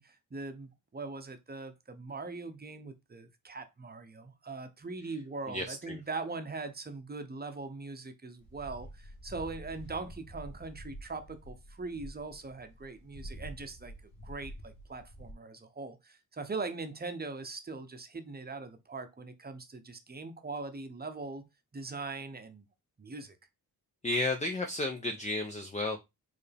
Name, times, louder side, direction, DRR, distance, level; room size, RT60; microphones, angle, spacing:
voice 1, 0.0-21.4 21.7-22.6 23.0-23.4, right 3 dB, 25° right, 0.8 m, -41 dB
voice 2, 5.5-6.0 24.0-26.0, left 2 dB, 20° left, 0.6 m, -33 dB
sound 1, 8.4-15.3, right 1 dB, 65° left, 1.9 m, -48 dB
4.5 x 3.3 x 3.4 m
cardioid pair, 90°, 38 cm